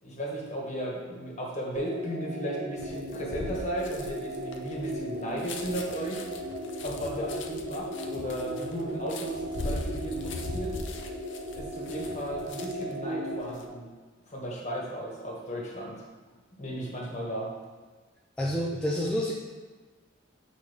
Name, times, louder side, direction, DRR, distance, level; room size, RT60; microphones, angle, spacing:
voice 1, 0.0-6.2 6.8-10.7 11.5-13.9 14.3-16.0 16.6-17.5, right 1 dB, 35° left, -3 dB, 1.5 m, -35 dB
sound 1, 1.7-13.6, equal, 85° right, 2.2 m, -37 dB
sound 2, 2.8-12.9 13.3-13.6, left 2 dB, 65° left, 0.7 m, -40 dB
voice 2, 18.4-19.3, equal, 5° left, -5 dB, 0.5 m, -28 dB
8.3 x 5.1 x 3.5 m, 1.3 s
head